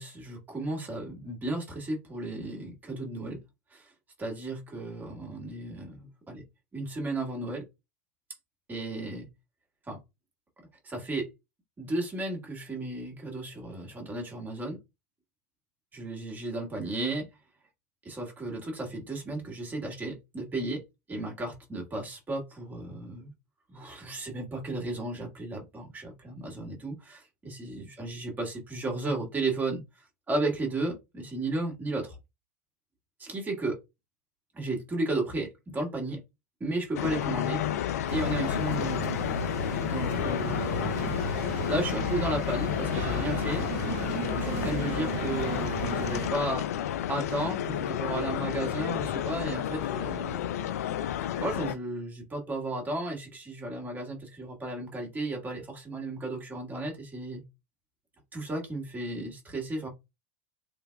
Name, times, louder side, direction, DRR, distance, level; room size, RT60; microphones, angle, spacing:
voice 1, 0.0-3.4 3.7-3.9 4.2-6.4 6.7-7.6 8.7-9.3 9.9-10.0 10.8-11.3 11.8-14.8 15.9-17.3 18.1-20.8 21.1-23.3 23.7-29.8 30.3-32.2 33.2-33.8 34.5-36.2 36.6-37.6 38.1-39.2 39.9-40.9 41.7-43.7 44.4-46.7 47.1-50.5 51.4-57.4 58.3-59.9, right 2 dB, 20° right, 1.8 m, -34 dB
sound 1, 36.9-51.7, left 10 dB, 75° left, 0.4 m, -31 dB
sound 2, 38.1-46.3, right 2 dB, 70° right, 1.0 m, -34 dB
3.6 x 3.2 x 2.3 m
hypercardioid pair, 90°, 8 cm